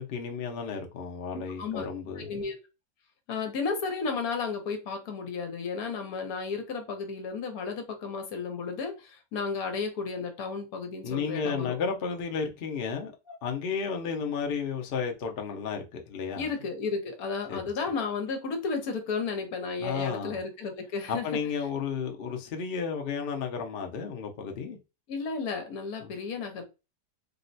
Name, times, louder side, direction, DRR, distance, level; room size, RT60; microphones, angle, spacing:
voice 1, 0.0-2.3 11.0-16.5 17.5-17.6 19.8-20.4 21.1-24.8 26.0-26.1, left 6 dB, 85° left, 0.5 m, -33 dB
voice 2, 1.3-1.9 2.2-2.6 3.3-11.8 16.3-21.3 25.1-26.6, left 4 dB, 65° left, 1.1 m, -33 dB
3.7 x 2.1 x 2.6 m
omnidirectional pair, 1.8 m